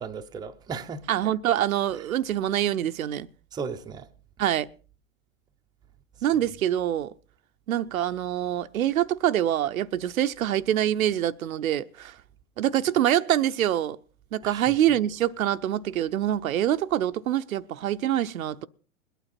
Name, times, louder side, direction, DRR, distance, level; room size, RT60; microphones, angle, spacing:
voice 1, 0.0-1.2 3.5-4.1 14.4-14.8, right 5 dB, 10° right, 0.6 m, -36 dB
voice 2, 1.1-3.3 4.4-4.7 6.2-7.1 7.7-12.2 12.6-14.0 14.3-18.7, right 11 dB, 85° right, 0.7 m, -25 dB
21.5 x 9.2 x 4.2 m
hypercardioid pair, 125°, 41 cm